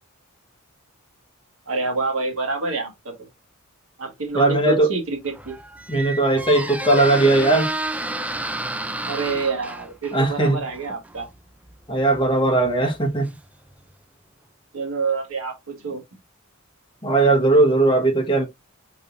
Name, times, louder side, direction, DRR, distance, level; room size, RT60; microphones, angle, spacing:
voice 1, 1.7-3.1 4.0-5.5 9.1-11.3 14.7-16.0, right 4 dB, 70° right, 1.6 m, -27 dB
voice 2, 4.3-4.9 5.9-7.7 10.1-10.6 11.9-13.3 17.0-18.4, right 2 dB, 25° left, 1.3 m, -18 dB
Squeak, 5.1-13.9, right 2 dB, 5° right, 0.4 m, -32 dB
5.1 x 4.0 x 2.6 m
head